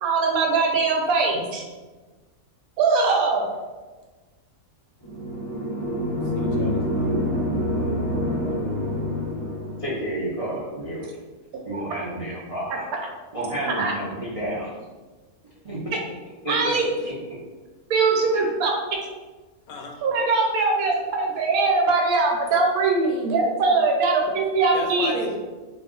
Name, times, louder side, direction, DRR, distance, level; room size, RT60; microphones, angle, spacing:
voice 1, 0.0-1.6 2.8-3.5 13.8-13.9 16.5-16.9 17.9-18.7 20.0-25.3, right 3 dB, 85° right, 0 dB, 1.1 m, -21 dB
sound 1, 5.0-10.0, equal, 30° left, 0.5 m, -26 dB
voice 2, 6.3-7.2 19.7-20.0 24.7-25.4, left 4 dB, 75° left, 2 dB, 1.0 m, -35 dB
voice 3, 9.8-11.1 11.6-12.8 13.3-14.7 15.6-16.0 16.4-16.7 17.0-17.1, right 1 dB, 55° right, -8 dB, 0.4 m, -30 dB
2.4 x 2.4 x 3.6 m, 1.3 s
omnidirectional pair, 1.5 m